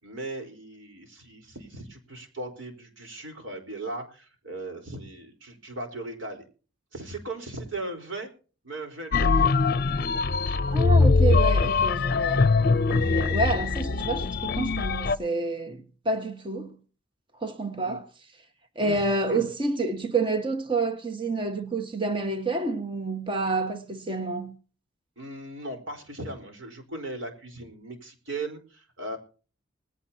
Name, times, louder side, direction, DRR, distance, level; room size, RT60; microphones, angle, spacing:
voice 1, 0.0-6.4 6.9-8.3 8.6-9.4 10.0-10.2 13.0-13.3 17.8-18.0 18.8-19.4 25.2-29.2, right 2 dB, 85° right, 4.5 m, -38 dB
sound 1, 9.1-15.2, left 4 dB, 50° left, 0.6 m, -22 dB
voice 2, 10.7-12.5 12.9-16.7 17.4-18.0 18.7-24.5, right 3 dB, 25° right, 1.5 m, -28 dB
20.0 x 16.0 x 2.9 m
head